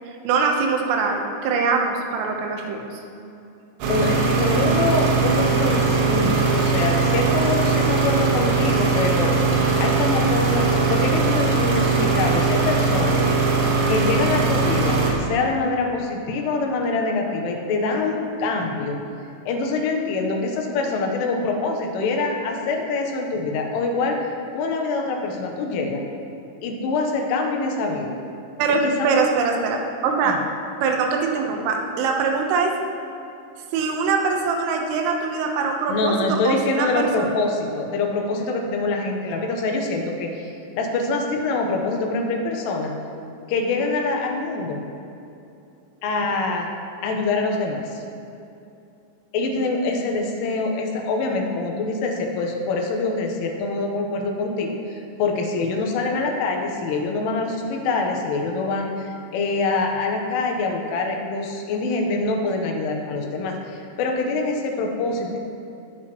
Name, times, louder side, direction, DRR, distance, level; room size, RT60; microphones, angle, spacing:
voice 1, 0.3-3.0 28.6-30.4 30.8-32.8 33.7-37.3, right 4 dB, 90° right, 2 dB, 3.7 m, -23 dB
sound 1, 3.8-15.1, right 4 dB, 70° right, 3.2 m, -20 dB
voice 2, 3.9-9.4 9.8-13.2 13.9-19.0 19.5-24.2 24.5-26.0 26.6-28.2 28.7-29.2 30.2-30.4 35.9-42.9 43.5-44.8 46.0-46.7 47.0-48.0 49.3-65.4, left 3 dB, 80° left, 2 dB, 3.5 m, -25 dB
19.5 x 8.0 x 3.0 m, 2.7 s
omnidirectional pair, 5.6 m